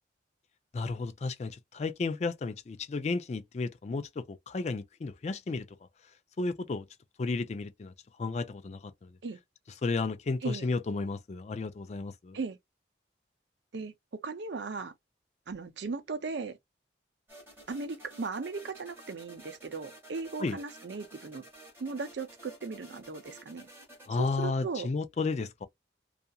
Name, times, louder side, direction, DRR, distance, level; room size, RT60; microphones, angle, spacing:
voice 1, 0.7-5.7 6.4-6.8 7.2-7.9 8.2-9.1 9.8-12.4 20.4-20.6 24.1-25.7, left 3 dB, 35° left, 0.3 m, -33 dB
voice 2, 10.4-10.7 12.3-12.6 13.7-13.9 14.2-14.9 15.5-16.6 17.7-21.4 21.8-23.7 24.1-24.9, right 4 dB, 75° right, 0.5 m, -37 dB
sound 1, 17.3-24.1, right 1 dB, 15° right, 1.5 m, -52 dB
2.7 x 2.4 x 2.3 m
head